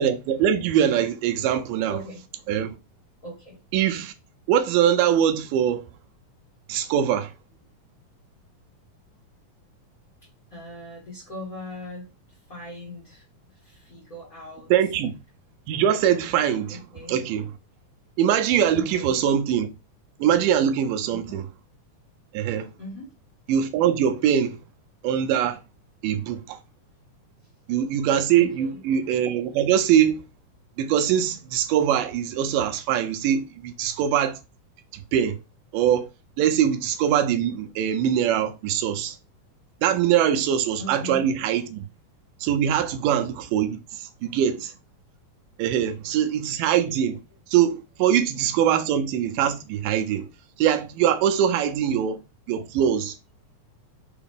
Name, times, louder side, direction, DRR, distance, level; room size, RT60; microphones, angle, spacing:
voice 1, 0.0-2.0 2.5-2.7 3.7-4.1 4.5-5.8 6.7-7.3 14.7-15.1 15.7-16.8 17.1-17.5 18.2-19.7 20.2-21.4 22.3-22.7 23.5-24.6 25.0-25.6 26.0-26.6 27.7-30.2 30.8-34.4 35.1-35.4 35.7-36.1 36.4-39.2 39.8-41.8 42.4-44.7 45.6-47.2 47.5-50.3 50.6-52.2 52.5-53.2, right 9 dB, 85° right, 2.1 m, -22 dB
voice 2, 1.9-2.2 3.2-3.6 10.5-13.2 13.6-14.7 16.7-17.2 18.7-19.2 21.1-21.4 22.8-23.1 28.4-28.8 40.8-41.3, left 1 dB, 50° left, 1.0 m, -39 dB
5.8 x 2.4 x 3.5 m
omnidirectional pair, 3.8 m